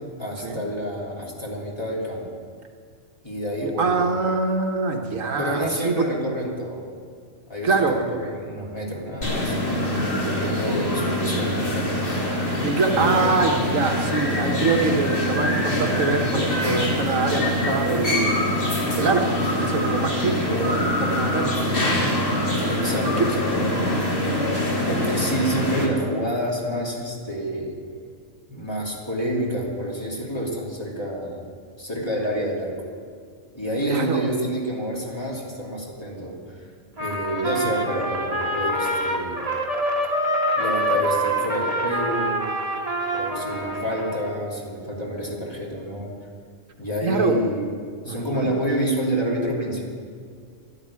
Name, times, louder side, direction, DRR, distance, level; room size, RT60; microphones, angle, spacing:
voice 1, 0.2-2.3 3.2-4.1 5.4-6.9 7.5-9.6 10.1-12.0 12.7-13.5 22.6-23.7 24.9-27.8 28.5-31.4 31.8-32.8 33.5-36.6 37.0-39.3 40.6-42.5 43.1-46.2 46.8-47.7 48.0-49.9, equal, 20° left, -4 dB, 3.1 m, -28 dB
voice 2, 3.8-6.1 7.6-8.2 12.6-21.7 23.2-23.3 33.8-34.2 47.0-47.4 48.1-48.5, right 4 dB, 80° right, 3 dB, 1.6 m, -24 dB
sound 1, 9.2-25.9, left 1 dB, 45° left, 2.6 m, -24 dB
Trumpet, 37.0-44.3, right 1 dB, 30° right, 1.7 m, -25 dB
12.0 x 11.5 x 8.7 m, 2.1 s
omnidirectional pair, 1.4 m